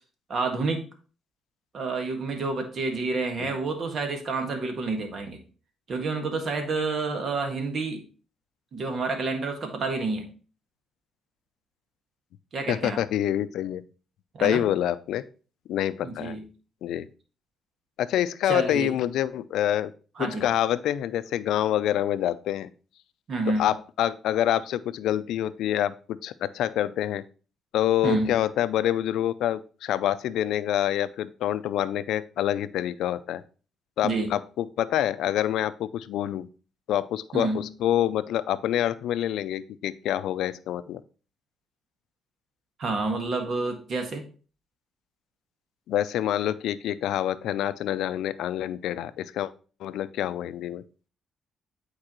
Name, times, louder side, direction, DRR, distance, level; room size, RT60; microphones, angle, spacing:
voice 1, 0.3-0.8 1.7-5.4 5.9-8.0 8.7-10.3 12.5-13.0 14.4-14.6 16.0-16.4 18.5-18.9 20.2-20.4 23.3-23.7 28.0-28.3 34.0-34.3 37.3-37.6 42.8-44.2, right 3 dB, 55° right, 4 dB, 1.7 m, -29 dB
voice 2, 12.7-13.8 14.4-15.3 15.7-16.4 16.8-17.1 18.0-19.9 20.2-22.7 23.6-27.2 27.7-33.4 34.0-36.5 36.9-41.0 45.9-49.5 49.8-50.8, left 11 dB, 80° left, 15 dB, 0.4 m, -26 dB
8.7 x 4.7 x 3.0 m, 0.37 s
cardioid pair, 90°, 0 cm